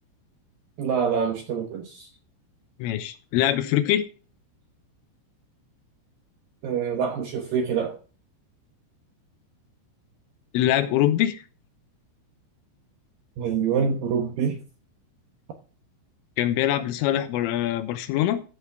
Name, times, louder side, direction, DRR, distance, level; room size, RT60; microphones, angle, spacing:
voice 1, 0.8-2.1 6.6-8.0 13.4-14.6, right 6 dB, 75° right, 2.1 m, -26 dB
voice 2, 2.8-4.1 10.5-11.4 16.4-18.4, left 12 dB, 90° left, 3.5 m, -23 dB
14.5 x 6.7 x 4.8 m
omnidirectional pair, 5.7 m